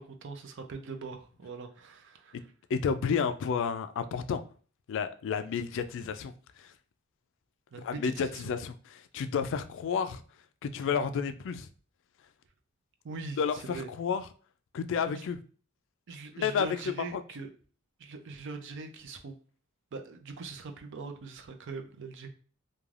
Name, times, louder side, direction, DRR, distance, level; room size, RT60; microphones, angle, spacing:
voice 1, 0.0-2.4 7.7-8.5 13.0-13.9 15.1-15.3 16.1-17.5 18.0-19.4 19.9-22.3, right 4 dB, 60° right, 6 dB, 0.4 m, -42 dB
voice 2, 2.7-4.4 4.9-6.7 7.8-10.2 10.6-11.7 13.4-14.2 14.7-15.4 16.4-17.2, left 6 dB, 60° left, 10 dB, 0.3 m, -31 dB
3.2 x 2.2 x 2.4 m, 0.41 s
head